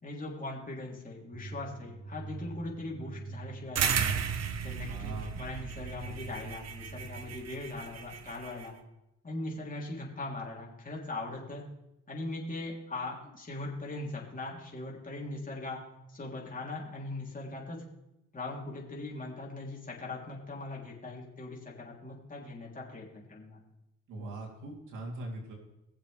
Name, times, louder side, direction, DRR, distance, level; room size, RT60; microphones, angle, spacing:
voice 1, 0.0-4.2 4.6-8.7 9.2-11.7 12.1-15.8 16.1-17.8 18.3-23.6, left 2 dB, 25° left, -3 dB, 3.5 m, -40 dB
sound 1, 1.3-7.5, right 4 dB, 35° right, 1.9 m, -45 dB
sound 2, 3.7-8.7, right 7 dB, 60° right, 1.2 m, -34 dB
voice 2, 4.8-5.4 24.1-25.5, right 2 dB, 80° right, -1 dB, 3.5 m, -41 dB
22.0 x 7.5 x 3.5 m, 0.90 s
cardioid pair, 90°, 30 cm